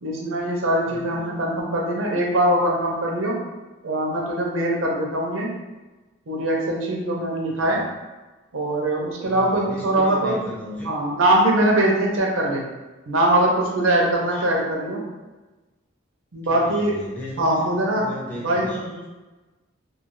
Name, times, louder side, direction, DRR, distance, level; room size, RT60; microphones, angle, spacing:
voice 1, 0.0-3.4 3.8-5.5 6.3-7.8 8.5-10.4 10.8-12.6 13.1-15.0 16.3-17.1 17.4-18.1 18.4-18.7, right 1 dB, 85° right, -1 dB, 0.6 m, -22 dB
voice 2, 0.9-1.3 7.5-7.8 9.2-10.9 14.3-14.4 16.4-17.7 18.0-19.1, left 1 dB, 10° left, -7 dB, 0.6 m, -36 dB
2.3 x 2.2 x 3.0 m, 1.2 s
head